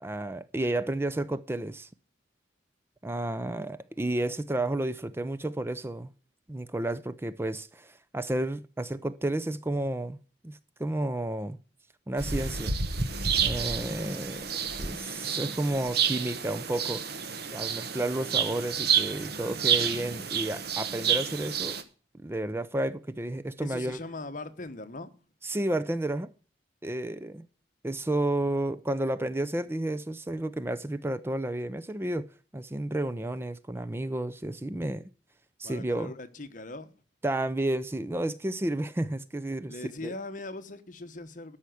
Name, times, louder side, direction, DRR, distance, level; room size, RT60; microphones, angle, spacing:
voice 1, 0.0-1.9 3.0-6.1 6.5-10.2 10.4-11.6 12.1-12.8 13.4-14.5 14.8-17.0 17.5-21.8 22.2-24.0 25.4-26.3 26.8-27.5 27.8-32.3 32.5-35.0 35.6-36.1 37.2-40.1, right 1 dB, 15° right, 0.5 m, -31 dB
sound 1, 12.2-21.8, right 7 dB, 60° right, 1.2 m, -30 dB
voice 2, 23.6-25.1 35.6-36.9 39.7-41.6, left 2 dB, 45° left, 1.1 m, -40 dB
13.0 x 5.8 x 7.7 m
head